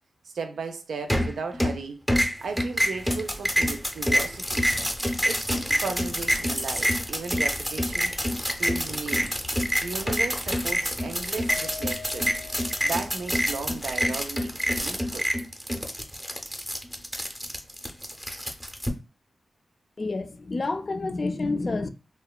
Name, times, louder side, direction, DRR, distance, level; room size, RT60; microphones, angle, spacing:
voice 1, 0.2-2.0 2.4-4.7 5.2-8.1 8.6-9.3 9.8-12.3 12.8-15.3, right 4 dB, 85° right, 0.4 m, -35 dB
sound 1, 1.1-1.8 2.1-18.9, equal, 5° right, 0.5 m, -27 dB
Mallet percussion, 11.5-13.8, left 7 dB, 90° left, 0.6 m, -43 dB
voice 2, 20.0-21.9, left 3 dB, 45° left, 0.3 m, -28 dB
2.9 x 2.2 x 2.2 m
cardioid pair, 75°, 0 cm